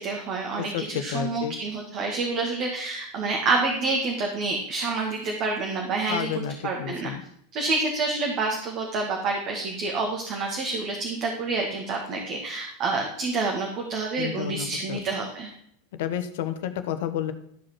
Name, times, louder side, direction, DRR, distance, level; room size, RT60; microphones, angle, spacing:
voice 1, 0.0-6.3 6.6-7.1 7.5-15.5, right 3 dB, 45° right, 1 dB, 2.0 m, -28 dB
voice 2, 0.5-1.5 6.1-7.2 14.2-15.0 16.0-17.3, left 10 dB, 65° left, 9 dB, 1.1 m, -31 dB
13.0 x 5.1 x 6.1 m, 0.67 s
hypercardioid pair, 90°, 0 cm